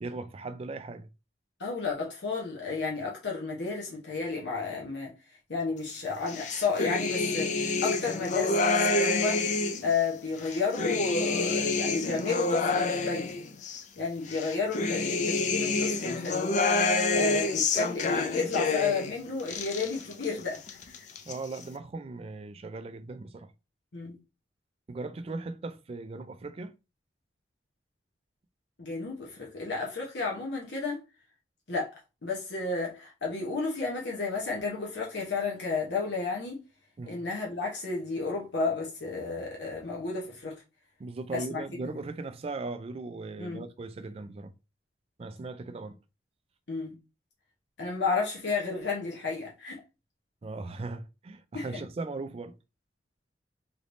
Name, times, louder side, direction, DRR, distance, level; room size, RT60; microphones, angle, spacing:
voice 1, 0.0-1.1 21.2-23.5 24.9-26.7 37.0-37.3 41.0-44.5 45.2-46.0 50.4-52.5, right 3 dB, 35° right, 0.3 m, -38 dB
voice 2, 1.6-5.1 5.5-9.4 9.8-13.3 14.0-20.6 21.0-21.1 23.9-24.2 28.8-31.0 31.7-36.6 37.1-40.5 41.3-42.0 43.4-43.6 46.7-46.9 47.8-49.8 51.5-51.8, left 4 dB, 70° left, 0.9 m, -32 dB
sound 1, 6.3-9.9 10.4-13.8 14.3-19.1 19.4-20.3 20.6-21.3, left 3 dB, 40° left, 0.4 m, -28 dB
3.3 x 3.0 x 2.5 m
head